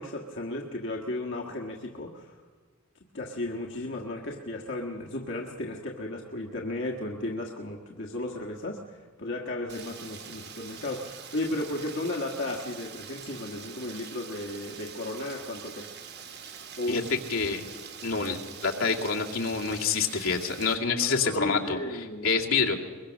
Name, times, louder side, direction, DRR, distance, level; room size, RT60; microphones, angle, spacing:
voice 1, 0.0-2.3 3.1-15.9 16.8-17.1 21.0-22.4, left 1 dB, 60° left, 0 dB, 1.6 m, -34 dB
Rain, 9.7-20.8, right 7 dB, 55° right, 1.7 m, -44 dB
voice 2, 16.9-17.6 18.0-21.8 22.2-22.8, left 5 dB, 80° left, 0 dB, 2.3 m, -27 dB
22.5 x 22.0 x 6.4 m, 1.5 s
head